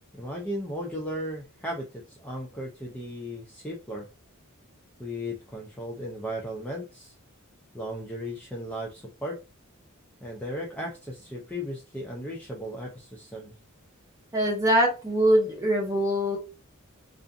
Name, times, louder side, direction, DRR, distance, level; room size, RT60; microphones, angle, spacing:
voice 1, 0.2-4.1 5.0-7.1 7.7-9.4 10.2-13.5, equal, 5° left, -2 dB, 0.4 m, -36 dB
voice 2, 14.3-16.4, equal, 15° right, -1 dB, 0.9 m, -23 dB
2.5 x 2.4 x 2.4 m, 0.30 s
head